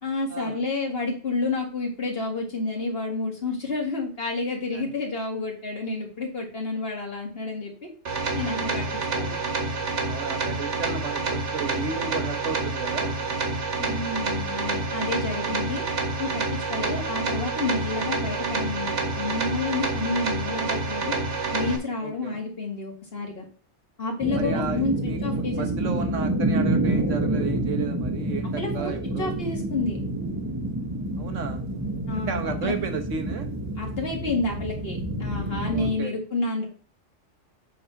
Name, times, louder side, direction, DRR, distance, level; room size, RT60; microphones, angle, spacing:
voice 1, 0.0-7.9 8.4-8.9 9.1-9.4 13.8-15.8 16.2-21.2 21.5-23.4 24.0-26.0 28.6-30.0 32.1-32.7 33.8-36.7, left 3 dB, 55° left, 0 dB, 2.5 m, -30 dB
sound 1, 8.0-21.8, right 3 dB, 70° right, 1.7 m, -28 dB
voice 2, 10.0-13.1 22.0-22.4 24.3-29.3 31.2-31.6 32.3-33.5 35.7-36.1, right 5 dB, 85° right, 6 dB, 1.5 m, -33 dB
sound 2, 24.2-35.9, right 1 dB, 15° right, 1.2 m, -28 dB
8.3 x 4.0 x 5.8 m, 0.40 s
omnidirectional pair, 1.2 m